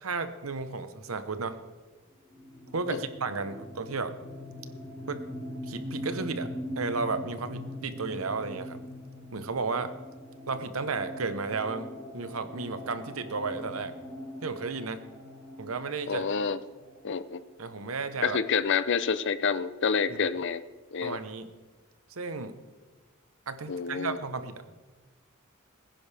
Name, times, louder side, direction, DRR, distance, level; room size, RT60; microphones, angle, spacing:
voice 1, 0.0-1.6 2.7-4.1 5.1-5.2 5.7-6.5 6.8-8.8 9.3-9.9 10.5-13.9 14.4-15.0 15.6-16.2 17.6-18.4 20.1-20.2 21.0-21.5 22.1-22.5 23.5-24.8, right 4 dB, 90° right, 10 dB, 1.0 m, -33 dB
sound 1, 2.2-17.8, equal, ahead, 4.4 m, -42 dB
voice 2, 16.1-16.6 17.0-17.4 18.2-20.6 20.9-21.2 23.7-24.2, left 6 dB, 60° left, 14 dB, 0.6 m, -28 dB
20.5 x 10.0 x 3.4 m, 1.3 s
head